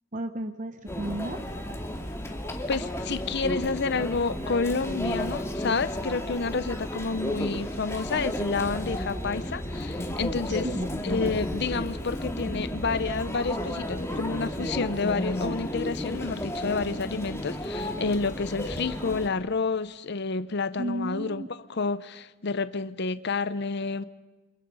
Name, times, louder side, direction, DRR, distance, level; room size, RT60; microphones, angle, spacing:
voice 1, 0.1-1.4 10.5-10.9 20.8-21.5, right 1 dB, 35° right, 0.9 m, -33 dB
Conversation / Chatter / Crowd, 0.9-19.3, left 1 dB, 15° left, 2.2 m, -33 dB
voice 2, 2.7-10.7 11.0-21.4 21.7-24.0, left 4 dB, 55° left, 0.7 m, -29 dB
29.0 x 26.0 x 5.5 m
head